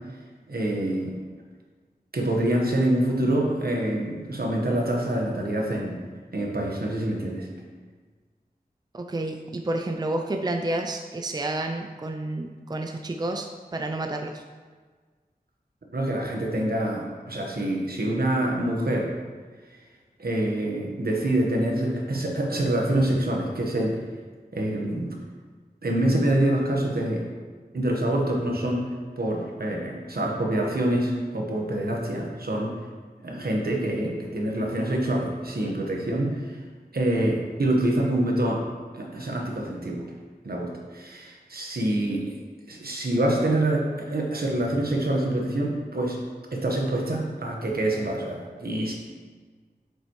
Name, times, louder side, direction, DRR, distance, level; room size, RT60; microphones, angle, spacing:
voice 1, 0.5-1.2 2.1-6.0 6.3-7.5 15.9-19.1 20.2-24.0 24.5-25.1 25.8-27.2 27.7-28.9 29.2-32.7 33.2-36.6 36.9-38.6 38.9-40.0 40.4-42.3 42.7-46.2 46.5-48.9, right 1 dB, 70° right, -1 dB, 1.3 m, -26 dB
voice 2, 8.9-14.4, right 2 dB, 25° right, 3 dB, 0.5 m, -30 dB
7.8 x 6.8 x 3.1 m, 1.5 s
wide cardioid pair, 75°, 16 cm